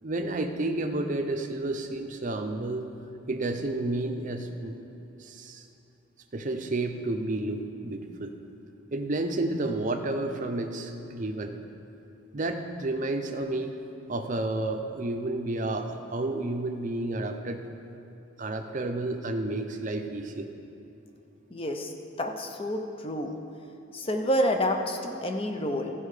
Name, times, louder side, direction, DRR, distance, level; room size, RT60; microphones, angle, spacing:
voice 1, 0.0-2.9 3.3-4.8 5.2-5.6 6.3-8.3 8.9-11.6 12.3-13.8 14.1-17.7 18.4-20.5, right 2 dB, 40° right, 5 dB, 0.6 m, -31 dB
voice 2, 21.5-21.9 22.2-23.3 23.9-25.9, equal, 25° left, 4 dB, 0.6 m, -28 dB
14.0 x 5.5 x 4.9 m, 3.0 s
head